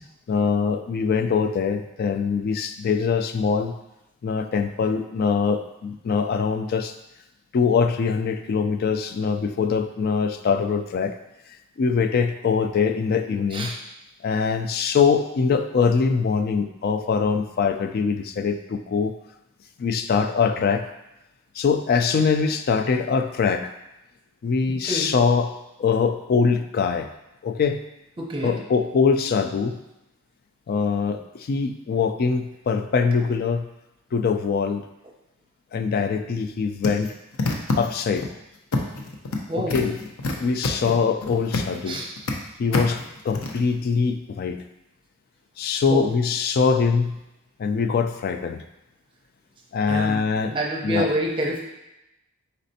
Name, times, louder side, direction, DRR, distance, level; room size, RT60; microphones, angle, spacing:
voice 1, 0.3-3.8 4.2-6.9 7.5-11.2 11.8-13.7 14.2-19.1 19.8-20.9 21.6-23.7 24.4-25.5 25.8-27.1 27.4-27.8 28.4-29.8 30.7-33.7 34.1-34.9 35.7-37.1 37.8-38.3 39.5-40.0 40.4-42.0 42.6-44.6 45.6-47.2 47.6-48.6 49.7-50.5 50.8-51.1, left 5 dB, 50° left, 8 dB, 0.3 m, -23 dB
voice 2, 28.2-28.6 39.5-39.8 40.8-40.9 41.9-42.1 45.9-46.1 49.9-51.6, right 1 dB, 25° right, -1 dB, 0.7 m, -27 dB
sound 1, 36.8-38.3 38.7-39.4 39.7-41.8 42.0-42.3 42.7-43.6, left 3 dB, 85° left, 0.6 m, -26 dB
4.2 x 4.1 x 2.7 m, 0.92 s
head